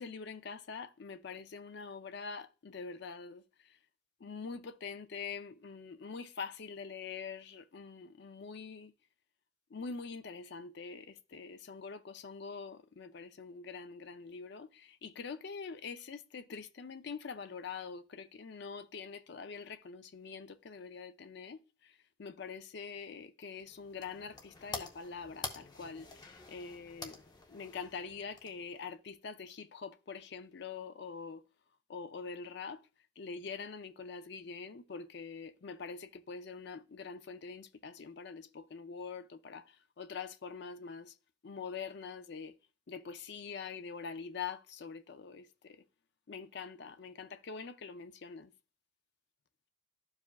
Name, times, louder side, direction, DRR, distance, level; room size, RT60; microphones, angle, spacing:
voice 1, 0.0-3.4 4.2-8.9 9.7-27.2 27.5-31.4 31.9-32.9 33.2-41.2 41.4-42.6 42.9-45.8 46.3-48.5, left 5 dB, 60° left, 0.5 m, -44 dB
sound 1, 23.5-28.9, left 3 dB, 20° left, 0.7 m, -47 dB
12.5 x 4.8 x 2.3 m
head